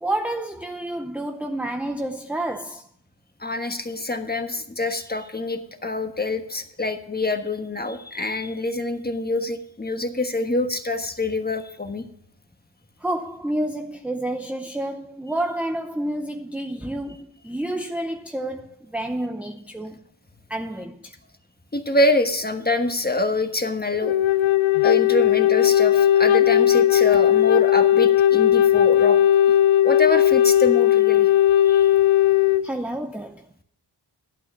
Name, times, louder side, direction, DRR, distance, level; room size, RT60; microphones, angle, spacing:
voice 1, 0.0-2.9 13.0-20.0 20.5-21.2 32.6-33.6, right 1 dB, 5° right, 0.6 m, -29 dB
voice 2, 3.4-12.1 21.7-24.2 24.8-29.2 29.8-31.3 31.6-31.9, left 2 dB, 20° left, 1.3 m, -25 dB
Wind instrument woodwind instrument, 24.0-32.6, left 12 dB, 80° left, 0.5 m, -17 dB
11.5 x 8.6 x 5.4 m
wide cardioid pair, 70°, 48 cm